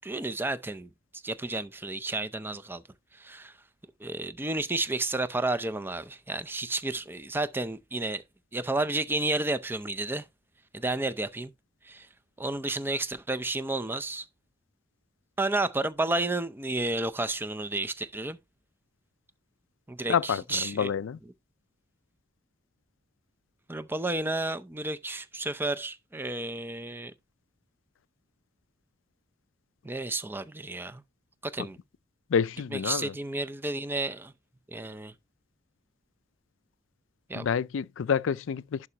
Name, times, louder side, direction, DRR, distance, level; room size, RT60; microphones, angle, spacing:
voice 1, 0.0-2.8 3.2-3.5 4.0-8.2 8.5-10.2 10.7-11.5 11.9-12.1 12.4-14.2 15.4-18.4 19.9-20.9 23.7-27.1 29.8-31.0 31.4-31.8 32.7-34.3 34.7-35.1 37.3-37.5, right 2 dB, 10° right, 0.5 m, -31 dB
voice 2, 20.1-21.2 31.6-31.7 32.3-33.1 37.3-38.9, left 7 dB, 75° left, 0.4 m, -28 dB
11.0 x 4.8 x 2.9 m
head